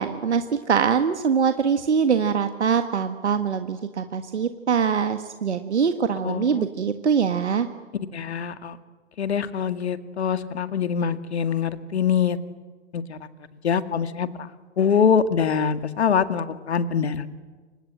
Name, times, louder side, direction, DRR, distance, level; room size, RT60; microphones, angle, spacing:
voice 1, 0.0-7.7, right 6 dB, 75° right, 8 dB, 1.6 m, -23 dB
voice 2, 6.2-6.6 8.1-8.8 9.2-12.4 12.9-13.2 13.6-14.3 14.8-17.3, left 7 dB, 65° left, 11 dB, 2.1 m, -24 dB
28.0 x 25.5 x 7.8 m, 1.4 s
figure-of-eight pair, 115°, 35 cm